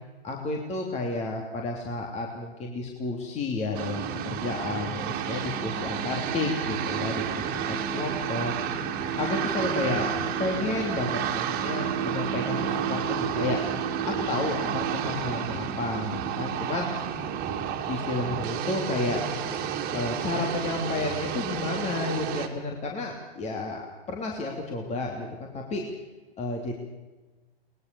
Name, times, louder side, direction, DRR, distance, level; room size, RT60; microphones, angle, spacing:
voice 1, 0.2-10.1 10.4-13.6 14.0-16.9 17.9-19.2 19.9-23.8 24.1-25.8 26.4-26.7, left 3 dB, 20° left, 1 dB, 3.1 m, -31 dB
sound 1, 3.7-22.5, right 8 dB, 30° right, 2.9 m, -30 dB
22.5 x 20.5 x 7.0 m, 1.2 s
hypercardioid pair, 130°, 31 cm